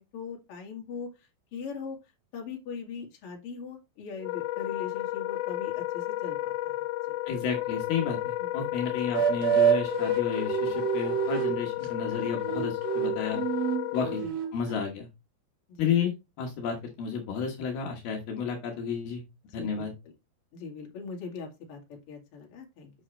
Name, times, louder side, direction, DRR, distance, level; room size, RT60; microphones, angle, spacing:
voice 1, 0.0-2.0 2.3-6.9 8.4-8.5 14.1-14.4 15.7-16.0 19.5-19.9 20.5-22.9, left 5 dB, 40° left, 1 dB, 2.7 m, -41 dB
Wind instrument woodwind instrument, 4.2-14.3, left 16 dB, 90° left, 2.9 m, -32 dB
voice 2, 7.3-13.4 13.9-14.2 14.5-15.1 15.8-16.1 16.4-19.2 19.5-19.9, left 6 dB, 70° left, 1 dB, 3.1 m, -32 dB
sound 1, 9.1-11.6 12.2-14.8, right 7 dB, 65° right, 2.7 m, -27 dB
8.2 x 6.3 x 3.2 m, 0.25 s
omnidirectional pair, 4.9 m